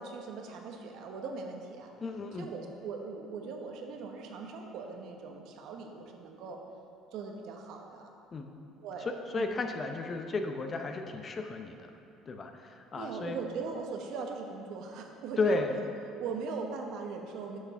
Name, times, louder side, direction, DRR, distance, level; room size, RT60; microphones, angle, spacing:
voice 1, 0.0-1.9 2.4-6.6 7.1-8.1 8.8-9.5 12.9-15.6 16.2-17.6, right 5 dB, 70° right, 2 dB, 1.1 m, -40 dB
voice 2, 2.0-2.5 8.3-8.5 9.0-11.9 12.3-13.4 15.4-15.8, left 3 dB, 35° left, 5 dB, 0.7 m, -33 dB
7.8 x 5.9 x 5.7 m, 2.6 s
supercardioid pair, 95°, 0 cm